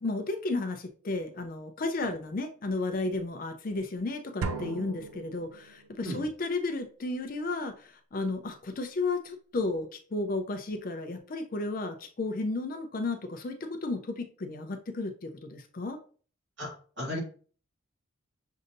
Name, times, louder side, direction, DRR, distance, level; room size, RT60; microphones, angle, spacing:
voice 1, 0.0-16.0, left 2 dB, 40° left, 0.4 m, -33 dB
sound 1, 4.4-6.1, right 3 dB, 90° right, 0.4 m, -37 dB
voice 2, 16.6-17.2, equal, 55° right, 2.0 m, -36 dB
6.3 x 2.7 x 2.5 m
head